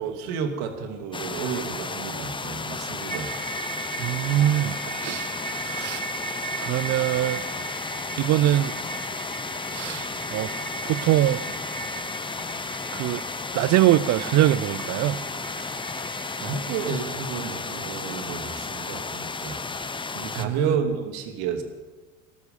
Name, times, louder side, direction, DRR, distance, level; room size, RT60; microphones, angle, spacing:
voice 1, 0.0-3.3 16.4-19.6 20.1-21.6, right 6 dB, 60° right, 2.7 m, -31 dB
sound 1, 1.1-20.5, left 4 dB, 10° left, 0.9 m, -33 dB
sound 2, 2.6-16.9, right 4 dB, 15° right, 1.8 m, -38 dB
voice 2, 4.0-5.3 5.6-6.0 6.6-7.4 8.2-8.7 9.7-10.0 10.3-10.5 10.8-11.4 12.9-13.2 13.5-15.2 20.4-20.6, right 14 dB, 40° right, 0.6 m, -22 dB
19.0 x 13.0 x 5.4 m
hypercardioid pair, 80°, 42 cm